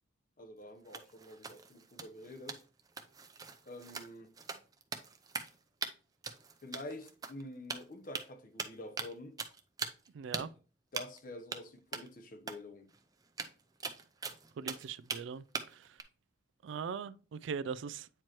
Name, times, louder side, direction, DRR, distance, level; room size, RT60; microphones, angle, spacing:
voice 1, 0.4-2.6 3.7-4.3 6.6-9.4 10.4-10.5 10.9-12.9, left 1 dB, 45° left, 0.9 m, -47 dB
sound 1, 0.8-5.6 5.8-5.9 6.2-7.4 7.7-8.3 8.6-9.1 9.4-10.1 10.3-10.4 10.9-11.2 11.5-11.6 11.9-12.1 12.5-12.6 12.9-13.0 13.2-15.2 15.5-16.0, right 4 dB, 20° right, 0.6 m, -41 dB
voice 2, 10.1-10.5 14.6-16.0 16.6-18.1, right 6 dB, 70° right, 0.3 m, -41 dB
8.9 x 4.5 x 3.0 m
head